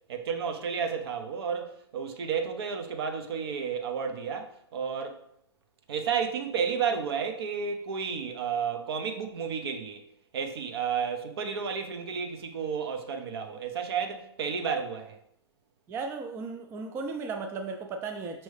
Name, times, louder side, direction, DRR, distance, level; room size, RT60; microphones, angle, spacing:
voice 1, 0.1-5.2 5.9-10.0 10.3-15.2, right 6 dB, 60° right, 0.8 m, -32 dB
voice 2, 15.9-18.4, right 4 dB, 15° right, 0.4 m, -35 dB
5.4 x 3.0 x 3.2 m
hypercardioid pair, 125°, 14 cm